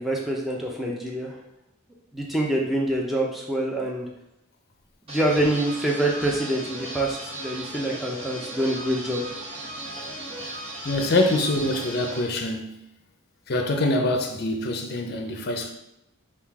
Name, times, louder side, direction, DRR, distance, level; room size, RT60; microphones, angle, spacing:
voice 1, 0.0-1.4 2.1-4.1 5.1-9.2, right 1 dB, ahead, 0.5 m, -26 dB
sound 1, 5.1-12.2, right 1 dB, 30° right, 0.8 m, -36 dB
voice 2, 10.8-12.8 13.5-15.7, left 2 dB, 50° left, 0.5 m, -24 dB
3.7 x 2.4 x 4.6 m
head